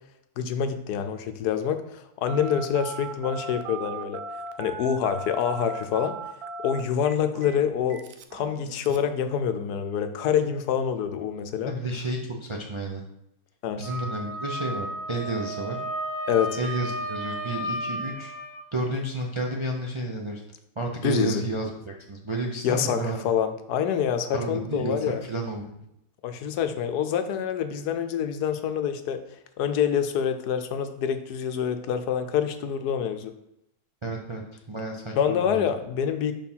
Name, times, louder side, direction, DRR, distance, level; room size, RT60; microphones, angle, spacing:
voice 1, 0.4-4.2 4.6-6.1 6.6-8.0 8.3-11.7 13.6-13.9 16.3-16.6 21.0-21.4 22.6-23.0 23.2-25.2 26.2-29.2 29.6-33.3 35.2-36.3, left 8 dB, 80° left, 8 dB, 1.2 m, -26 dB
Telephone, 2.3-9.1, right 4 dB, 75° right, 1.1 m, -38 dB
voice 2, 11.7-13.0 13.8-15.8 16.6-18.3 18.7-20.4 20.8-23.3 24.3-25.8 34.0-34.4 34.7-35.6, right 2 dB, 35° right, 0 dB, 0.4 m, -31 dB
Wind instrument woodwind instrument, 13.8-18.6, right 1 dB, 55° right, 1.6 m, -33 dB
5.5 x 4.5 x 5.6 m, 0.81 s
omnidirectional pair, 1.7 m